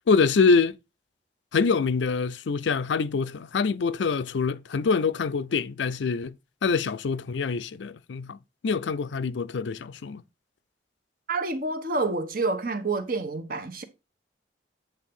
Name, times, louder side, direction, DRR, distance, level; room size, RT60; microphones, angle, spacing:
voice 1, 0.1-0.7 1.5-6.4 6.6-8.4 8.6-10.2, left 5 dB, 85° left, 0.5 m, -25 dB
voice 2, 11.3-13.8, right 3 dB, 50° right, 1.1 m, -28 dB
8.3 x 3.5 x 5.3 m
head